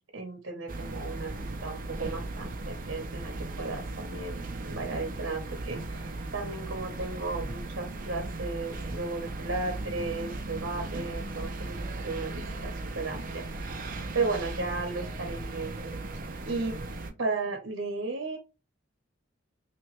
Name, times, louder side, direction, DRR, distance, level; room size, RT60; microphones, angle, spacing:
voice 1, 0.1-13.8 14.1-15.9 16.4-16.8 17.2-18.4, right 3 dB, 85° right, 3 dB, 0.9 m, -35 dB
sound 1, 0.7-17.1, right 2 dB, 45° right, 0.6 m, -37 dB
3.2 x 3.0 x 3.1 m, 0.29 s
head